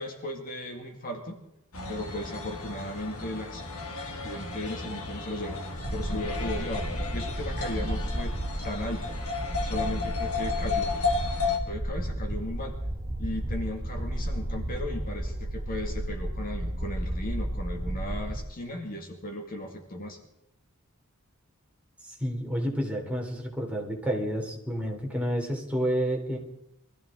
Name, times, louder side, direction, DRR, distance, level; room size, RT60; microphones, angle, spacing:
voice 1, 0.0-1.4 1.9-3.7 4.2-5.6 5.9-8.4 8.6-9.2 9.6-10.9 11.7-12.8 13.2-20.2, left 1 dB, 40° left, 3 dB, 2.3 m, -36 dB
sound 1, 1.7-11.6, left 4 dB, 75° left, 2.1 m, -33 dB
sound 2, 5.8-18.4, right 1 dB, 25° right, 2.8 m, -33 dB
voice 2, 22.0-26.4, equal, 5° right, -1 dB, 3.4 m, -30 dB
24.0 x 15.0 x 3.8 m, 0.82 s
head